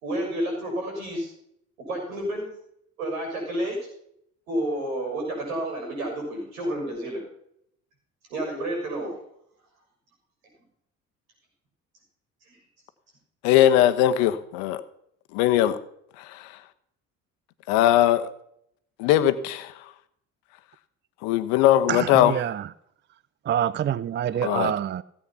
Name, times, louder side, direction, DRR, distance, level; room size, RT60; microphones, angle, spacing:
voice 1, 0.0-1.3 1.9-2.5 3.0-3.8 4.5-7.2 8.3-9.1 12.5-12.6, right 1 dB, 75° right, 6.4 m, -30 dB
voice 2, 13.4-14.8 15.3-15.8 16.3-16.5 17.7-18.3 19.0-19.7 21.2-22.3 24.4-24.7, left 12 dB, 65° left, 1.1 m, -20 dB
voice 3, 21.9-22.7 23.4-25.0, right 10 dB, 25° right, 0.5 m, -26 dB
16.5 x 8.5 x 5.7 m
figure-of-eight pair, 50°, 41 cm